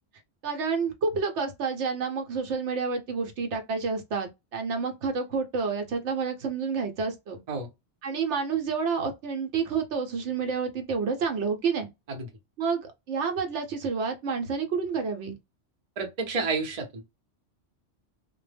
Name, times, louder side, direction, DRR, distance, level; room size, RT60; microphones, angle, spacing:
voice 1, 0.4-7.4 8.0-11.9 12.6-15.4, right 5 dB, 70° right, 0.8 m, -29 dB
voice 2, 16.0-17.0, right 4 dB, 40° right, 0.6 m, -30 dB
2.1 x 2.0 x 3.2 m
omnidirectional pair, 1.3 m